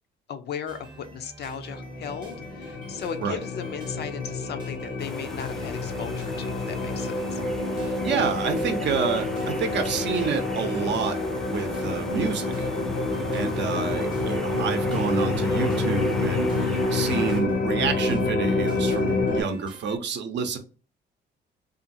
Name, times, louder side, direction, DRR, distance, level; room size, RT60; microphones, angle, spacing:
voice 1, 0.3-7.4, left 7 dB, 55° left, 7 dB, 0.5 m, -36 dB
sound 1, 0.7-20.0, right 2 dB, 25° right, 0.7 m, -46 dB
sound 2, 1.7-19.4, left 2 dB, 75° left, 0.9 m, -28 dB
sound 3, 5.0-17.4, left 1 dB, ahead, 0.3 m, -38 dB
voice 2, 7.8-12.7 13.3-20.6, right 5 dB, 60° right, 6 dB, 0.6 m, -29 dB
2.5 x 2.5 x 2.6 m, 0.37 s
cardioid pair, 90°, 20 cm